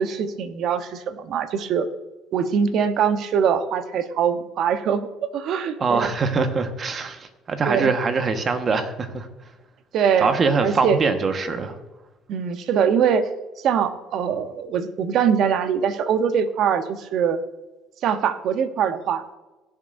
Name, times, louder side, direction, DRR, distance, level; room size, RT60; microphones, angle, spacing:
voice 1, 0.0-1.9 2.3-6.1 7.7-7.9 9.9-10.3 10.6-11.0 12.3-13.3 13.6-17.4 18.0-19.2, right 7 dB, 65° right, 10 dB, 0.9 m, -22 dB
voice 2, 5.8-9.3 10.2-11.8, right 4 dB, 40° right, 7 dB, 1.4 m, -23 dB
17.0 x 7.6 x 2.6 m, 1.1 s
supercardioid pair, 85°, 0 cm